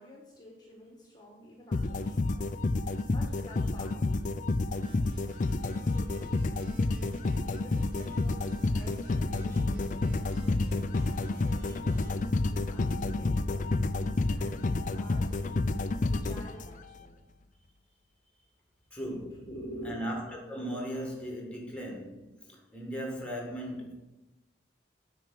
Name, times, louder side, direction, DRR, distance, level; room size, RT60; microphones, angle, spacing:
voice 1, 0.0-2.5 2.8-6.8 7.6-13.9 14.3-15.8 16.1-17.2 19.3-19.9, equal, 25° left, 1.3 m, -50 dB
sound 1, 1.7-17.0, left 2 dB, 45° left, 0.5 m, -29 dB
sound 2, 4.8-12.1, right 1 dB, 50° right, 2.3 m, -54 dB
voice 2, 18.9-19.4 19.8-23.9, equal, 5° left, 1.8 m, -37 dB
9.1 x 4.7 x 6.2 m
head